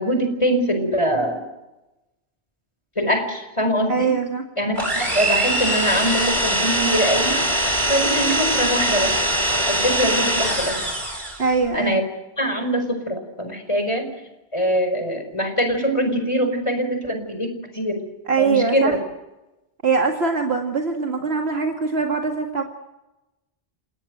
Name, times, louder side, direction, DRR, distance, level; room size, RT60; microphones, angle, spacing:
voice 1, 0.0-1.5 3.0-4.1 4.6-7.4 7.9-9.1 9.7-10.8 11.7-12.0 12.4-14.1 14.5-18.0 18.4-19.0, equal, 25° left, 7 dB, 4.7 m, -23 dB
voice 2, 3.9-4.4 11.4-12.0 18.3-19.0 19.8-22.6, right 5 dB, 70° right, 3 dB, 2.2 m, -22 dB
sound 1, 4.8-11.5, right 1 dB, 45° right, 4.8 m, -22 dB
30.0 x 17.5 x 7.8 m, 1.0 s
omnidirectional pair, 1.1 m